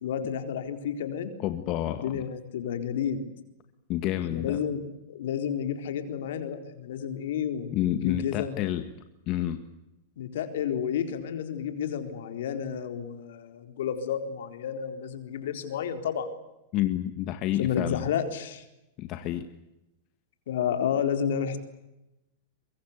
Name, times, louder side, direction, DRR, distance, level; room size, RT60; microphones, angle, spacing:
voice 1, 0.0-1.3 2.0-3.2 4.3-7.7 8.0-8.6 10.2-16.3 17.6-18.6 20.5-21.6, left 8 dB, 70° left, 7 dB, 4.1 m, -31 dB
voice 2, 1.4-2.2 3.9-4.6 7.7-8.9 9.3-9.6 16.7-18.1 19.0-19.5, left 13 dB, 45° left, 9 dB, 1.7 m, -29 dB
23.5 x 23.5 x 8.3 m, 0.92 s
hypercardioid pair, 120°, 0 cm